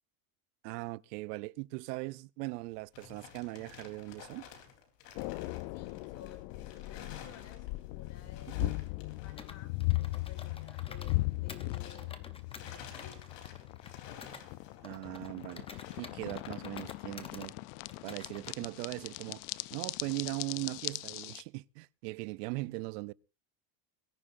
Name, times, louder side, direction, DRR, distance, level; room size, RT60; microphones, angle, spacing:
voice 1, 0.6-4.4 8.6-8.7 14.8-17.5 18.0-19.4 19.7-23.1, right 24 dB, 85° right, 0.6 m, -39 dB
sound 1, 2.5-12.2 12.5-16.2, left 8 dB, 80° left, 3.7 m, -53 dB
sound 2, 5.2-21.4, left 22 dB, 60° left, 0.6 m, -38 dB
voice 2, 5.7-8.6 9.2-12.1 12.6-13.3, left 7 dB, 30° left, 2.1 m, -55 dB
Computer keyboard, 9.4-11.2 11.5-14.4 14.8-17.5 17.9-18.6, left 5 dB, 10° left, 0.7 m, -51 dB
22.5 x 14.0 x 2.6 m
cardioid pair, 165°, 47 cm